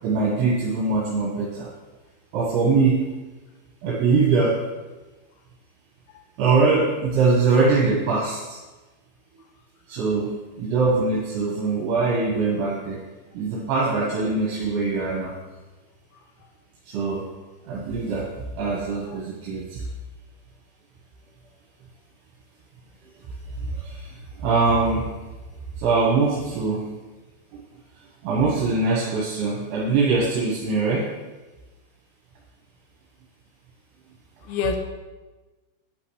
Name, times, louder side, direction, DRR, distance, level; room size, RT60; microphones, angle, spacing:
voice 1, 0.0-1.7 2.3-3.1 3.8-4.6 6.4-8.6 9.9-13.0 13.4-15.3 16.9-17.3 17.6-18.3 18.6-19.8 23.6-25.1 25.8-26.9 27.5-27.6 28.2-31.1, right 4 dB, 75° right, -5 dB, 3.6 m, -22 dB
voice 2, 16.1-16.5 19.0-19.2 34.4-34.8, left 5 dB, 80° left, 5 dB, 3.1 m, -30 dB
11.0 x 9.1 x 3.2 m, 1.2 s
omnidirectional pair, 5.4 m